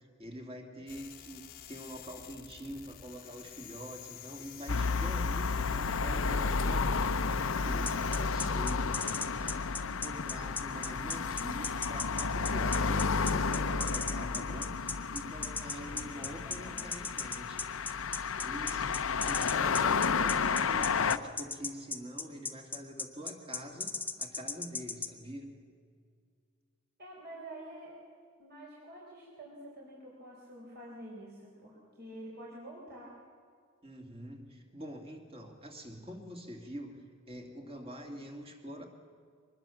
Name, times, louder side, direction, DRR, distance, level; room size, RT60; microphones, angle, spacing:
voice 1, 0.0-17.7 18.4-25.6 33.8-38.9, equal, 25° right, 3 dB, 2.7 m, -45 dB
sound 1, 0.9-8.7, left 10 dB, 40° left, 1.0 m, -50 dB
sound 2, 4.7-21.2, left 5 dB, 65° left, 0.7 m, -32 dB
sound 3, 7.9-25.1, left 4 dB, 10° left, 0.9 m, -36 dB
voice 2, 15.7-16.9 27.0-28.0 28.4-33.1, right 1 dB, 45° right, -3 dB, 4.4 m, -48 dB
24.0 x 20.5 x 7.3 m, 2.1 s
head